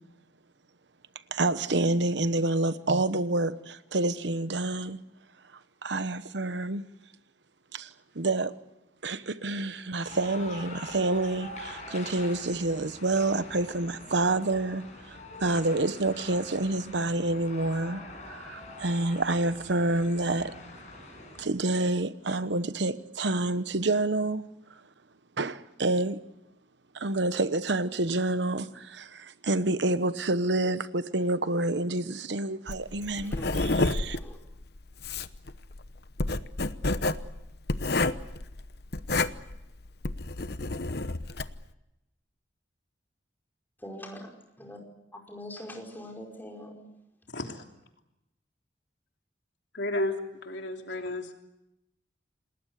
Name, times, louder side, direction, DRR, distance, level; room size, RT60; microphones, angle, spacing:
voice 1, 1.3-5.0 5.8-6.8 7.7-8.6 9.0-20.5 21.4-24.4 25.4-26.2 26.9-34.2, right 2 dB, 70° right, 13 dB, 1.1 m, -28 dB
sound 1, 10.0-21.4, left 2 dB, 40° left, 7.6 m, -45 dB
Writing, 32.7-41.6, left 2 dB, 55° left, 0.9 m, -30 dB
voice 2, 33.3-34.4 43.8-44.8 45.1-46.9, equal, 10° left, 1 dB, 5.1 m, -43 dB
voice 3, 47.3-47.6 49.7-50.2 50.4-51.3, left 1 dB, 70° left, 3 dB, 3.2 m, -32 dB
28.0 x 20.0 x 8.3 m, 0.90 s
head